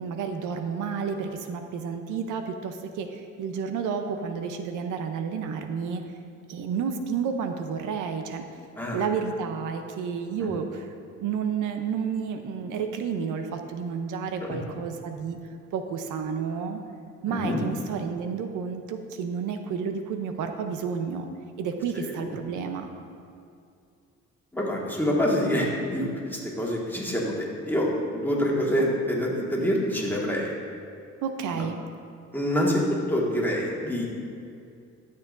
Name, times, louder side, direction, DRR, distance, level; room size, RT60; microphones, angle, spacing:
voice 1, 0.0-6.0 6.5-8.4 8.9-10.9 11.2-15.4 15.7-16.8 17.2-21.3 21.6-22.9 31.2-31.8, right 6 dB, 80° right, 6 dB, 0.7 m, -31 dB
voice 2, 17.3-17.6 21.9-22.3 24.5-30.5 31.5-31.6 32.3-32.8 33.1-34.1, equal, 5° left, -3 dB, 1.6 m, -26 dB
12.5 x 6.8 x 2.5 m, 2.4 s
cardioid pair, 90°, 30 cm